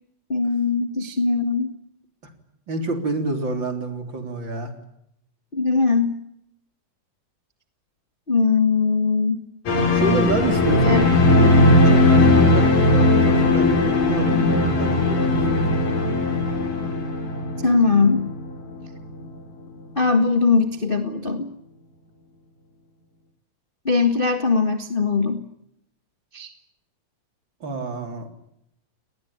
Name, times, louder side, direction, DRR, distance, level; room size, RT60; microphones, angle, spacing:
voice 1, 0.3-1.7 5.5-6.2 8.3-9.4 10.8-11.1 17.6-18.3 19.9-21.5 23.8-25.4 26.3-26.5, left 4 dB, 30° left, 8 dB, 1.0 m, -20 dB
voice 2, 2.7-4.7 9.9-15.6 27.6-28.3, right 2 dB, 35° right, 7 dB, 4.0 m, -28 dB
sound 1, 9.7-18.8 19.1-19.2, left 2 dB, 70° left, 6.6 m, -18 dB
29.5 x 20.0 x 8.7 m, 0.78 s
omnidirectional pair, 4.0 m